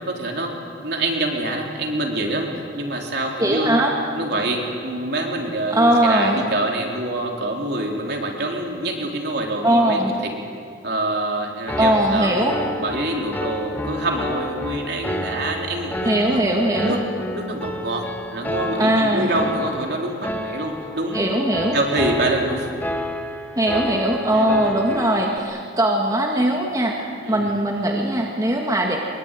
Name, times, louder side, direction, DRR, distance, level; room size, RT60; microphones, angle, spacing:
voice 1, 0.1-0.5 0.8-3.8 4.1-10.3 10.8-12.5 12.8-16.4 16.7-17.0 17.3-18.0 18.3-21.2 21.7-22.7 24.3-24.7 27.2-27.5, right 1 dB, 60° right, 1 dB, 4.0 m, -26 dB
voice 2, 3.4-3.9 5.7-6.4 9.6-10.1 11.8-12.5 16.0-17.0 18.8-19.3 21.1-21.8 23.6-29.0, right 1 dB, 20° right, 0 dB, 2.1 m, -20 dB
Piano, 11.7-25.4, equal, 10° left, 1.6 m, -30 dB
23.5 x 23.0 x 9.3 m, 2.3 s
head